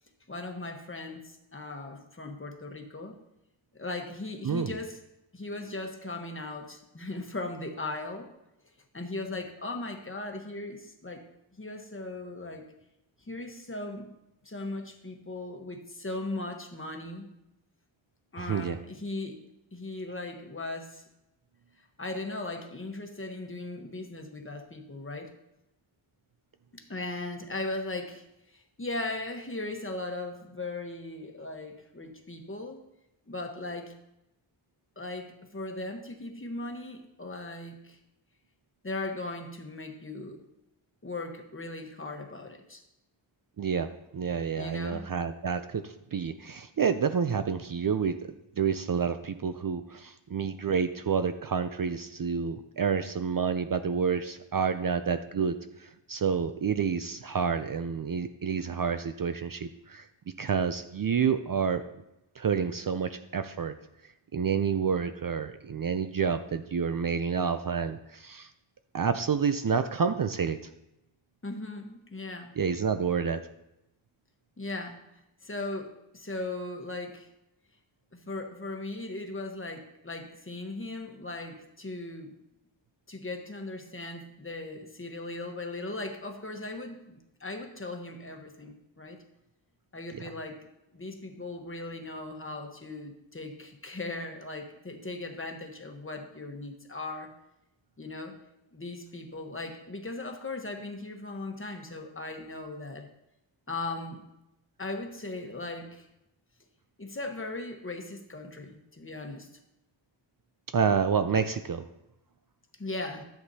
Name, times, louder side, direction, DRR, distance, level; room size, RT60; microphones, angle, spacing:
voice 1, 0.3-3.2 3.7-5.0 5.3-8.3 8.9-11.2 11.6-12.6 13.3-14.1 14.4-17.3 18.3-19.4 19.7-21.0 22.0-25.3 26.7-32.8 33.3-33.9 35.0-38.0 38.8-40.4 41.0-42.8 44.6-45.1 71.4-72.5 74.6-75.0 75.4-77.3 78.1-82.3 83.1-89.2 89.9-90.6 90.9-97.3 98.0-98.3 98.7-103.1 103.7-104.2 104.8-106.1 107.0-109.5 112.8-113.2, left 2 dB, 25° left, 3 dB, 1.2 m, -38 dB
voice 2, 4.4-4.8 18.4-18.8 43.6-60.1 60.4-61.8 62.4-63.8 64.0-68.5 68.9-70.6 72.6-73.5 110.7-111.9, right 6 dB, 45° right, 9 dB, 0.5 m, -29 dB
13.5 x 8.0 x 2.8 m, 0.87 s
wide cardioid pair, 110°, 48 cm